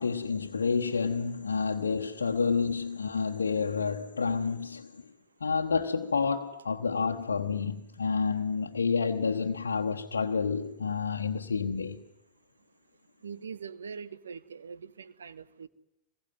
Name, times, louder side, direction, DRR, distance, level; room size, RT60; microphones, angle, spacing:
voice 1, 0.0-5.0 5.4-12.0, left 5 dB, 75° left, 1.2 m, -29 dB
voice 2, 13.2-15.7, right 6 dB, 70° right, 1.1 m, -42 dB
26.5 x 21.5 x 9.4 m
figure-of-eight pair, 90°, 0 cm